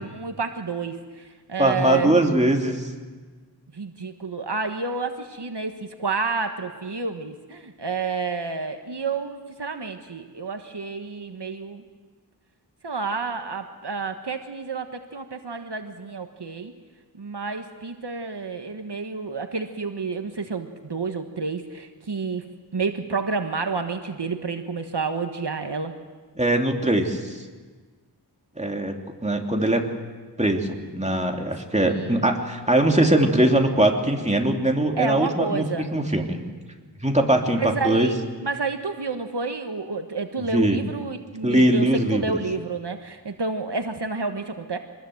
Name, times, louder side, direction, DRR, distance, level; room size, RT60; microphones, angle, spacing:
voice 1, 0.0-2.3 3.7-11.8 12.8-16.7 17.2-22.5 22.7-25.9 31.9-32.4 35.0-35.9 37.5-38.1 38.4-44.8, right 4 dB, 75° right, 6 dB, 1.4 m, -30 dB
voice 2, 1.6-2.9 26.4-27.4 28.6-28.9 29.2-29.9 30.4-36.4 37.0-38.1 40.5-40.8 41.4-42.2, right 1 dB, 15° right, 2 dB, 2.8 m, -21 dB
25.0 x 20.5 x 7.8 m, 1.4 s
wide cardioid pair, 45°, 42 cm